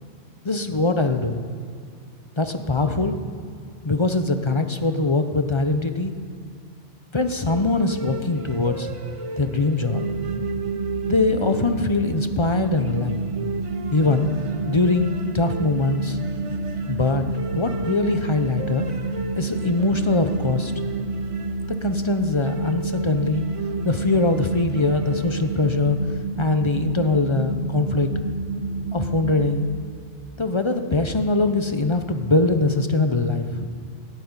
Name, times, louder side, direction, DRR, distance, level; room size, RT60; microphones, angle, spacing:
voice 1, 0.4-1.4 2.4-3.2 3.8-6.1 7.1-8.9 9.4-10.0 11.1-13.2 13.9-14.3 14.7-16.2 16.9-18.9 19.4-20.7 21.7-23.4 23.8-26.0 26.4-28.1 28.9-29.7 30.4-33.7, left 3 dB, 30° left, 8 dB, 0.8 m, -22 dB
sound 1, 7.5-26.0, right 4 dB, 35° right, 0.6 m, -37 dB
sound 2, 9.9-29.5, right 3 dB, 65° right, 1.3 m, -29 dB
14.0 x 8.5 x 9.7 m, 2.3 s
omnidirectional pair, 1.2 m